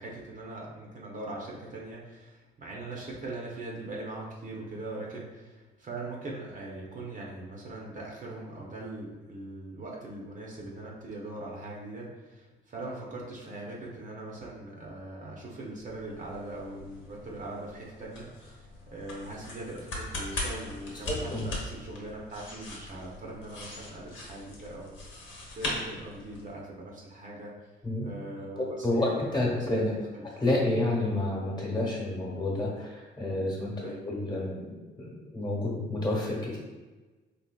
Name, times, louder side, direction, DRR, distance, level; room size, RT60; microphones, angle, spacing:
voice 1, 0.0-25.2 25.5-27.5 28.0-29.8 30.1-30.3 33.8-34.0, right 2 dB, 40° right, -3 dB, 0.7 m, -41 dB
sound 1, 15.8-26.6, left 2 dB, 75° left, 1.0 m, -40 dB
voice 2, 21.1-21.4 27.8-28.1 28.6-30.0 30.2-36.6, left 2 dB, 20° left, -3 dB, 1.1 m, -30 dB
4.0 x 2.8 x 2.2 m, 1.2 s
cardioid pair, 90°, 20 cm